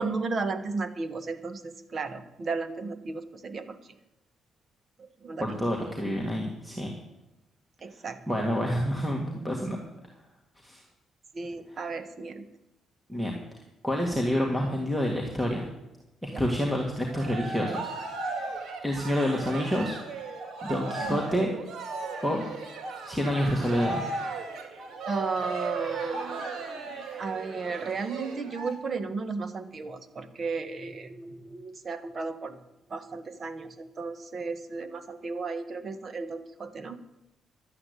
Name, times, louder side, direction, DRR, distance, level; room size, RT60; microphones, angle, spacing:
voice 1, 0.0-3.8 5.0-5.6 7.8-8.2 11.3-12.5 16.3-16.4 21.0-21.2 25.0-32.6 32.9-37.0, right 4 dB, 45° right, 9 dB, 1.3 m, -34 dB
voice 2, 5.4-7.0 8.3-9.8 10.6-10.8 11.7-11.8 13.1-13.4 13.8-15.6 16.2-17.9 18.2-18.5 18.8-20.0 20.6-21.5 22.2-22.4 23.1-24.0, equal, 5° right, -1 dB, 2.1 m, -28 dB
Cheering, 16.9-28.7, right 3 dB, 70° right, 2.4 m, -36 dB
12.0 x 8.7 x 8.2 m, 0.94 s
cardioid pair, 90°, 0 cm